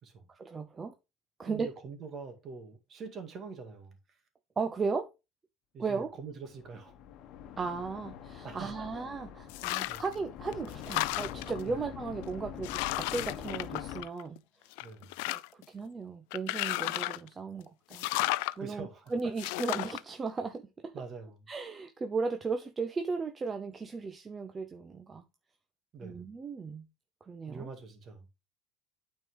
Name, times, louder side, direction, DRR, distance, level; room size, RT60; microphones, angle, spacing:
voice 1, 0.3-0.9 1.4-1.7 4.6-5.1 5.8-6.1 7.6-14.4 15.3-18.1 18.6-20.9 21.5-25.2 26.0-26.9 27.2-27.7, right 4 dB, 25° right, 0.7 m, -36 dB
voice 2, 1.4-4.2 5.7-6.9 8.4-8.9 9.9-10.0 11.6-11.8 14.8-15.2 18.6-19.3 20.9-21.4 25.9-26.3 27.5-28.3, right 5 dB, 40° right, 2.0 m, -45 dB
sound 1, 6.5-14.0, left 10 dB, 60° left, 1.1 m, -44 dB
sound 2, 9.5-10.1 10.5-11.6 12.2-12.3 12.6-14.4 14.7-15.6 16.3-17.3 17.9-18.5 19.4-20.0, left 20 dB, 85° left, 0.3 m, -33 dB
8.9 x 4.4 x 3.8 m
supercardioid pair, 120°, 0 cm